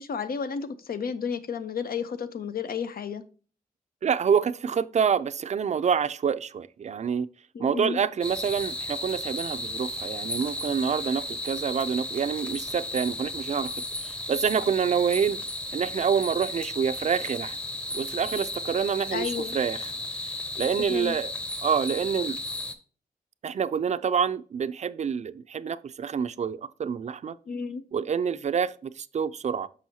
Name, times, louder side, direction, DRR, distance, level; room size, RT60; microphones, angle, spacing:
voice 1, 0.0-3.2 7.5-8.0 19.1-19.5 20.8-21.2 27.5-27.8, left 6 dB, 80° left, 0.7 m, -32 dB
voice 2, 4.0-7.3 7.6-15.4 15.7-17.6 17.9-19.9 20.6-21.3 21.6-22.4 23.4-27.4 27.9-29.7, right 7 dB, 50° right, 0.4 m, -27 dB
sound 1, 8.2-22.7, left 1 dB, 5° left, 0.7 m, -34 dB
6.2 x 6.1 x 2.7 m
wide cardioid pair, 170°, 15 cm